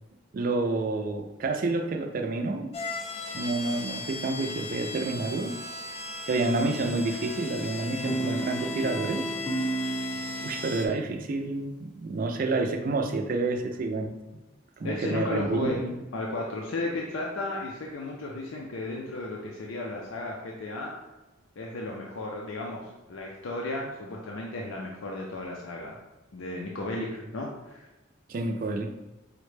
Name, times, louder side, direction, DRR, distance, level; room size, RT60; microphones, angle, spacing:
voice 1, 0.3-2.7 3.3-5.5 6.3-9.2 10.4-14.1 14.8-16.0 27.0-27.1 28.3-28.9, right 2 dB, 45° right, 5 dB, 0.3 m, -29 dB
sound 1, 2.7-10.9, left 3 dB, 30° left, 0.3 m, -37 dB
Guitar, 8.0-12.4, right 3 dB, 5° left, 0.7 m, -34 dB
voice 2, 14.8-15.8 16.1-20.9 21.6-26.0 26.3-27.9, left 2 dB, 90° left, -1 dB, 0.5 m, -34 dB
4.8 x 2.1 x 3.1 m, 1.0 s
head